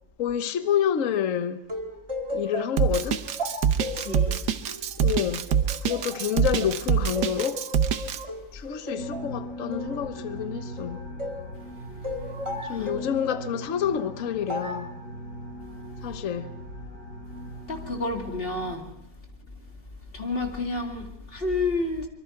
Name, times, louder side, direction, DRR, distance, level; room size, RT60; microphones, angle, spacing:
voice 1, 0.2-1.6 2.3-3.2 5.0-5.4 5.8-7.6 8.5-11.0 12.6-14.9 16.0-16.5, left 9 dB, 55° left, 1.3 m, -28 dB
sound 1, 1.7-6.7 7.1-11.5 12.0-13.5 14.5-14.9, left 1 dB, 20° right, 1.5 m, -35 dB
Drum kit, 2.8-8.2, right 8 dB, 85° right, 1.6 m, -24 dB
voice 2, 3.9-4.4 12.7-12.9 17.7-18.9 20.1-22.1, left 3 dB, 35° left, 2.7 m, -30 dB
sound 2, 9.0-18.8, equal, 75° left, 6.9 m, -39 dB
24.5 x 23.5 x 4.7 m
omnidirectional pair, 1.8 m